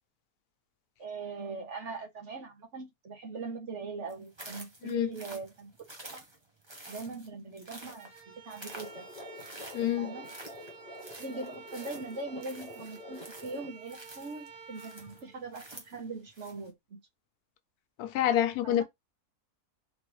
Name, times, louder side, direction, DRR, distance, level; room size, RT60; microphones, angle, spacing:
voice 1, 1.0-5.7 6.1-6.2 6.9-9.1 10.0-10.3 11.1-17.0 18.6-18.8, right 3 dB, 55° right, 1.3 m, -41 dB
sound 1, 4.1-16.7, right 1 dB, 20° right, 1.0 m, -49 dB
sound 2, 7.9-16.0, right 5 dB, 90° right, 1.6 m, -51 dB
sound 3, 8.7-13.7, left 2 dB, 35° left, 1.1 m, -47 dB
voice 2, 9.7-10.1 18.0-18.8, left 11 dB, 85° left, 1.1 m, -27 dB
4.1 x 3.3 x 3.0 m
omnidirectional pair, 1.6 m